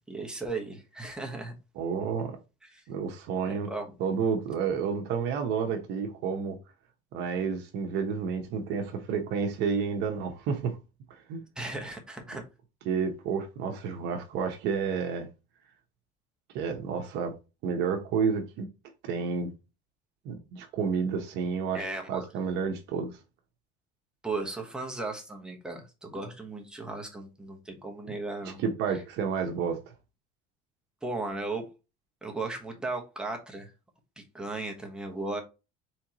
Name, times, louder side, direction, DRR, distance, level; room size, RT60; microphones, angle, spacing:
voice 1, 0.1-1.5 2.6-2.8 3.4-3.9 11.6-12.4 21.7-22.2 24.2-28.6 31.0-31.6 32.2-33.7 34.2-35.4, right 3 dB, 5° right, 1.0 m, -36 dB
voice 2, 1.8-2.4 2.9-3.7 4.0-6.6 7.1-10.8 11.1-11.4 12.9-15.3 16.5-17.3 17.6-18.7 19.0-19.5 20.2-23.2 28.6-29.8, right 6 dB, 60° right, 1.0 m, -30 dB
4.5 x 3.6 x 2.9 m
cardioid pair, 155°, 20 cm